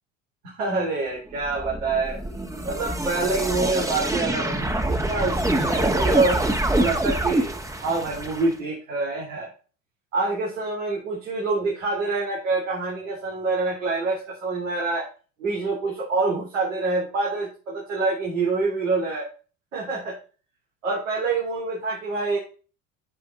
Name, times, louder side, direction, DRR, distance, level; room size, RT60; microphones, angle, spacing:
voice 1, 0.4-2.2 2.7-6.4 6.7-9.5 10.1-15.1 15.4-19.3 19.7-20.2 20.8-22.4, right 3 dB, 85° right, -4 dB, 3.5 m, -26 dB
sound 1, 1.4-8.5, right 1 dB, 10° right, 1.9 m, -25 dB
12.5 x 4.9 x 3.8 m, 0.35 s
hypercardioid pair, 70°, 38 cm